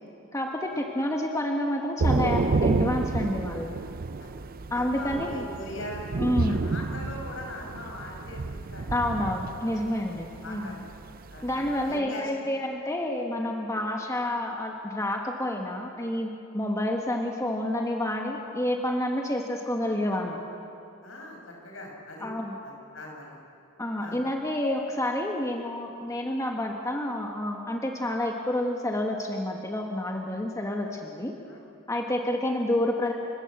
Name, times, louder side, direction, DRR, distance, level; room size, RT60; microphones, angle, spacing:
voice 1, 0.3-3.7 4.7-5.4 6.2-6.7 8.9-10.8 11.4-20.4 22.2-22.6 23.8-31.3 31.9-33.1, left 1 dB, 15° left, 1 dB, 1.4 m, -29 dB
Thunder / Rain, 2.0-12.0, right 3 dB, 45° right, 0.6 m, -30 dB
voice 2, 4.7-6.0 6.3-8.9 9.7-9.9 10.4-10.8 11.3-11.5 11.9-12.3 21.0-22.3 22.6-23.4 24.0-24.2 31.4-31.6, left 1 dB, 70° left, 0 dB, 5.8 m, -41 dB
30.0 x 14.5 x 8.2 m, 2.7 s
head